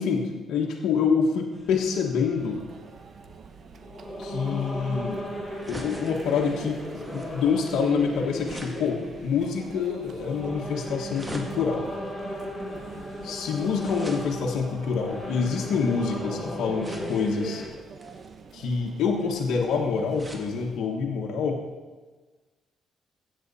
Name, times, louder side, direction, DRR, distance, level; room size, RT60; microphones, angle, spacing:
voice 1, 0.0-2.6 4.2-5.2 5.7-11.9 13.2-17.6 18.5-21.6, left 5 dB, 75° left, 0 dB, 1.3 m, -26 dB
sound 1, 1.5-17.7, left 1 dB, ahead, 4.3 m, -37 dB
Conversation / Chatter / Crowd, 2.4-20.8, right 5 dB, 55° right, 1.0 m, -45 dB
sound 2, 3.5-16.1 16.8-17.4 18.0-20.5 21.0-21.1 21.3-21.4, right 1 dB, 20° right, 1.8 m, -45 dB
14.5 x 8.3 x 4.2 m, 1.3 s
cardioid pair, 90°, 0 cm